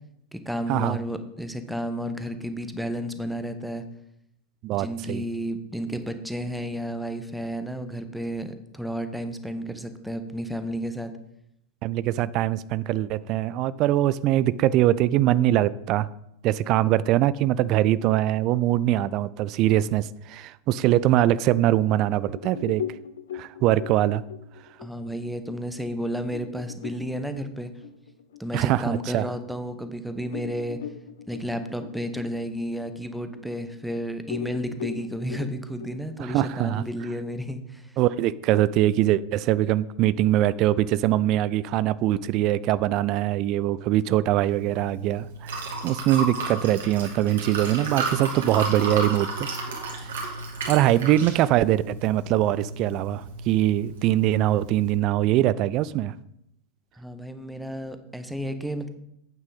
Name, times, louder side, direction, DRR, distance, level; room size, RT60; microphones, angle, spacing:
voice 1, 0.3-3.8 4.7-11.1 24.8-27.7 28.4-30.8 31.3-37.9 56.9-58.9, equal, ahead, 9 dB, 1.0 m, -32 dB
voice 2, 4.6-5.2 11.8-16.1 16.4-22.8 23.3-24.2 28.5-29.2 36.2-36.8 38.0-49.5 50.0-50.1 50.7-56.1, right 13 dB, 40° right, 18 dB, 0.4 m, -22 dB
sound 1, 22.3-29.4 29.8-29.9 30.3-33.9 34.3-37.4, left 9 dB, 60° left, 0.7 m, -40 dB
Liquid, 44.4-55.0, right 3 dB, 60° right, 2.6 m, -33 dB
10.5 x 8.7 x 4.1 m, 0.80 s
figure-of-eight pair, 90°, 0 cm